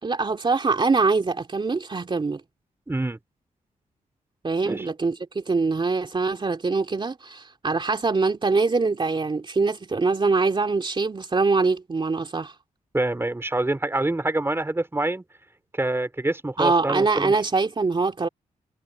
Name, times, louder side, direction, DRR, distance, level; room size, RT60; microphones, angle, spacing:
voice 1, 0.0-2.4 4.4-12.6 16.6-18.3, right 4 dB, 35° right, 3.0 m, -23 dB
voice 2, 2.9-3.2 4.6-4.9 12.9-15.2 15.7-17.3, right 2 dB, 15° right, 4.1 m, -26 dB
cardioid pair, 70°, 14 cm